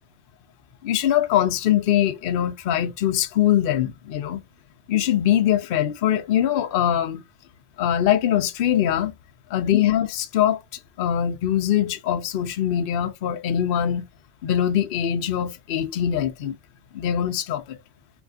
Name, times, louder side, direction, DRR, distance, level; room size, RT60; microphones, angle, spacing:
voice 1, 0.8-4.4 4.9-7.2 7.8-9.1 9.5-10.6 11.0-14.0 14.4-16.6 16.9-17.8, left 10 dB, 60° left, 0.6 m, -22 dB
3.4 x 3.0 x 2.4 m
omnidirectional pair, 1.3 m